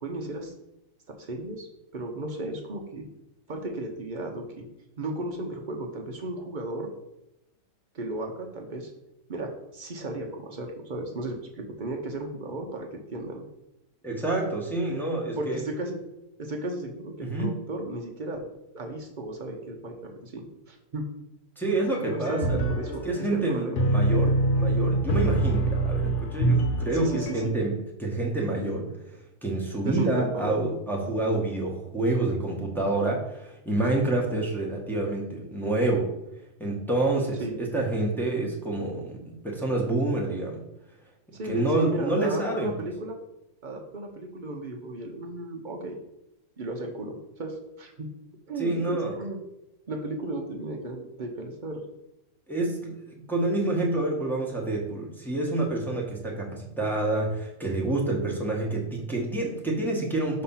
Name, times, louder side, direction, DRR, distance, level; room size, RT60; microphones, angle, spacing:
voice 1, 0.0-0.5 1.1-1.7 1.9-3.1 3.5-4.7 5.0-6.9 7.9-8.9 9.3-13.4 15.4-16.0 16.4-18.4 18.7-21.1 22.0-23.8 26.9-27.5 29.8-30.6 37.4-37.6 41.3-43.2 43.6-46.0 46.6-48.1 48.5-49.4 49.9-51.8, right 2 dB, 50° right, 2 dB, 0.6 m, -34 dB
voice 2, 14.0-15.6 17.2-17.6 21.6-22.6 22.9-36.1 36.6-40.6 41.4-42.7 48.6-49.2 52.5-60.4, right 2 dB, ahead, -3 dB, 0.8 m, -28 dB
sound 1, 21.8-27.5, right 2 dB, 75° left, 1.3 m, -25 dB
5.7 x 3.2 x 5.5 m, 0.88 s
omnidirectional pair, 1.8 m